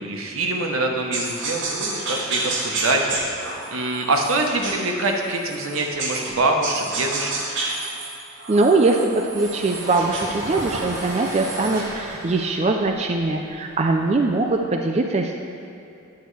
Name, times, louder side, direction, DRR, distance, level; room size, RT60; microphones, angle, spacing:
voice 1, 0.0-3.4 3.7-7.3, right 2 dB, 85° right, 2 dB, 0.9 m, -24 dB
sound 1, 1.1-6.3 6.6-11.9, right 2 dB, 65° right, 1.3 m, -30 dB
voice 2, 8.5-15.4, right 3 dB, 30° right, 2 dB, 0.3 m, -21 dB
sound 2, 9.1-14.6, equal, 15° right, 1.1 m, -35 dB
10.5 x 6.7 x 3.2 m, 2.7 s
head